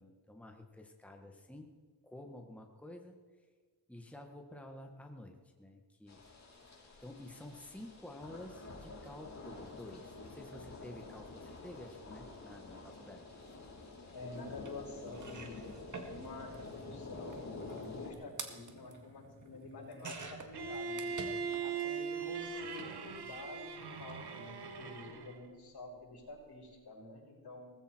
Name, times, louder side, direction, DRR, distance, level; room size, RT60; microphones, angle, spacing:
voice 1, 0.0-1.7 2.0-3.1 3.9-6.2 7.0-13.4, left 1 dB, 5° left, 3 dB, 1.7 m, -51 dB
sound 1, 6.1-18.1, left 3 dB, 40° left, 4.9 m, -49 dB
voice 2, 14.1-27.7, left 2 dB, 70° left, -3 dB, 6.5 m, -49 dB
sound 2, 14.6-14.7 15.1-21.8 22.1-22.9 23.9-24.1 24.4-24.5, right 4 dB, 50° right, 2.2 m, -49 dB
Bowed string instrument, 20.5-25.5, right 5 dB, 80° right, 1.5 m, -40 dB
19.0 x 15.5 x 4.6 m, 1.5 s
wide cardioid pair, 100°, 39 cm